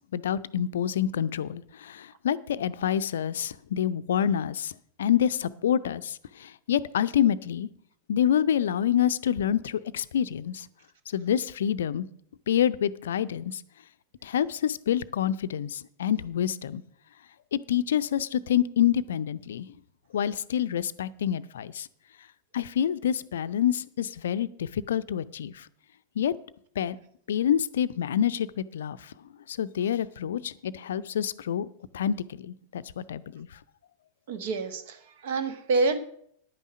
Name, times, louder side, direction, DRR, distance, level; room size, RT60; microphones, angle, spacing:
voice 1, 0.0-4.7 5.0-7.7 8.1-10.7 11.1-12.1 12.5-13.6 14.2-16.8 17.5-19.7 20.1-21.9 22.5-25.7 26.2-26.3 26.8-27.0 27.3-28.5 28.7-29.1 29.5-31.7 31.9-33.5, left 9 dB, 60° left, 15 dB, 0.5 m, -27 dB
voice 2, 34.3-36.0, right 3 dB, 55° right, 10 dB, 1.3 m, -27 dB
10.5 x 9.1 x 6.1 m, 0.66 s
figure-of-eight pair, 90°, 0 cm